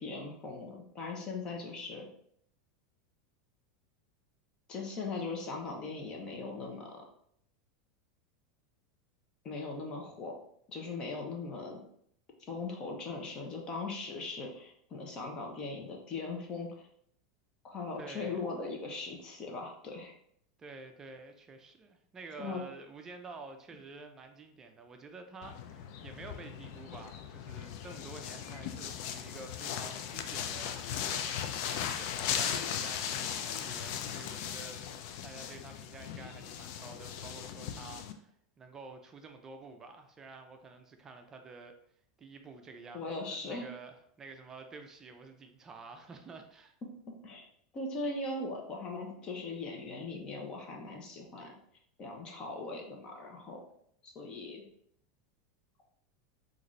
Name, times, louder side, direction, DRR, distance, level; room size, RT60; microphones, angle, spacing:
voice 1, 0.0-2.1 4.7-7.0 9.4-10.3 10.7-11.8 12.5-16.9 17.6-20.1 22.4-22.6 42.9-43.6 47.2-47.4 47.7-51.5 52.0-53.6 54.0-54.7, left 3 dB, 35° left, 1 dB, 0.8 m, -39 dB
voice 2, 18.0-18.5 20.6-34.9 35.2-38.3 38.6-41.7 42.2-46.8, right 3 dB, 20° right, 5 dB, 0.4 m, -49 dB
sound 1, 25.4-38.1, left 9 dB, 60° left, 0.4 m, -38 dB
3.8 x 2.6 x 3.1 m, 0.67 s
supercardioid pair, 135°, 2 cm